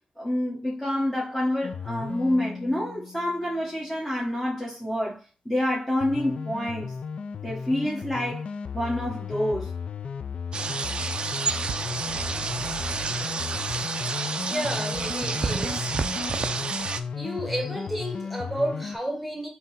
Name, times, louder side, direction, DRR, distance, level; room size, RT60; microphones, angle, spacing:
voice 1, 0.2-5.2 5.4-6.9 7.4-8.5 8.7-9.7, left 1 dB, 15° left, 1.0 m, -27 dB
sound 1, 1.6-3.7 6.0-19.0, left 6 dB, 60° left, 0.3 m, -35 dB
sound 2, 10.5-17.0, right 5 dB, 45° right, 0.4 m, -30 dB
voice 2, 14.5-16.1 17.1-19.5, equal, ahead, 1.3 m, -32 dB
3.6 x 2.8 x 4.1 m
cardioid pair, 90°, 2 cm